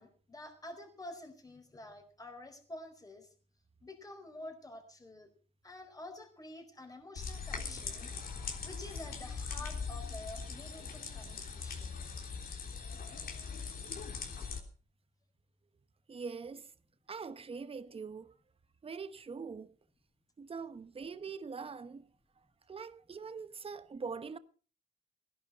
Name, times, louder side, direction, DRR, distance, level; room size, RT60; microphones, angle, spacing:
voice 1, 0.0-3.3 3.8-5.3 5.6-8.1 8.6-12.0, left 1 dB, 20° left, 4.6 m, -49 dB
sound 1, 7.2-14.6, left 5 dB, 60° left, 3.4 m, -41 dB
voice 2, 16.1-16.7 17.1-18.4 18.8-19.7 20.4-22.1 22.7-24.4, right 5 dB, 35° right, 1.1 m, -43 dB
17.0 x 11.0 x 5.6 m
cardioid pair, 95°, 17 cm